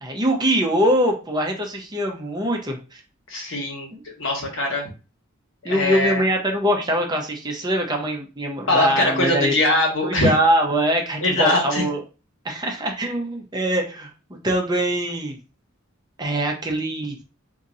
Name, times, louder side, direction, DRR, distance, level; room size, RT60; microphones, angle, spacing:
voice 1, 0.0-3.0 3.9-4.0 5.6-9.5 10.0-12.0 12.4-14.1 14.4-15.4 16.2-17.2, right 1 dB, 20° right, 2 dB, 0.7 m, -23 dB
voice 2, 3.3-3.9 4.2-4.9 5.6-6.2 8.7-10.3 11.2-11.8, left 1 dB, 70° left, 0 dB, 1.3 m, -22 dB
4.4 x 2.7 x 2.6 m, 0.33 s
head